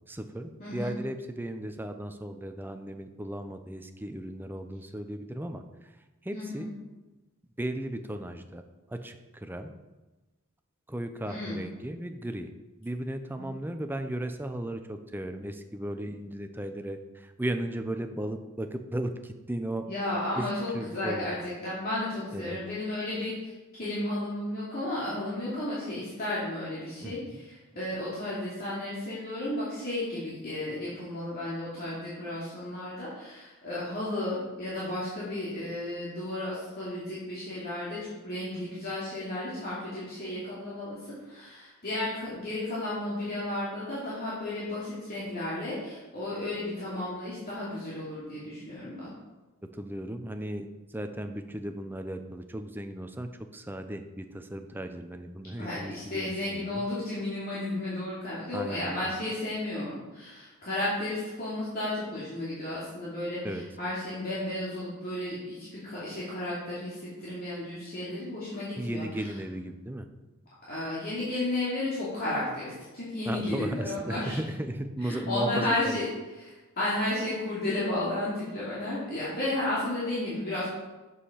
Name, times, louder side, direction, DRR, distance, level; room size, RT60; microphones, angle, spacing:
voice 1, 0.1-5.6 6.2-6.7 7.6-8.6 8.9-9.7 10.9-12.5 12.8-19.9 20.3-20.4 20.7-21.3 22.3-22.6 27.0-27.4 49.8-56.8 58.5-59.1 63.4-63.6 68.8-70.1 73.2-76.0, right 1 dB, 10° right, 7 dB, 0.6 m, -36 dB
voice 2, 6.3-6.7 11.3-11.6 13.4-13.5 19.9-23.5 23.8-41.0 41.2-49.1 55.6-69.0 70.7-74.4 75.0-76.1 76.4-80.7, left 1 dB, 45° left, -9 dB, 2.5 m, -33 dB
7.9 x 6.6 x 5.6 m, 1.2 s
head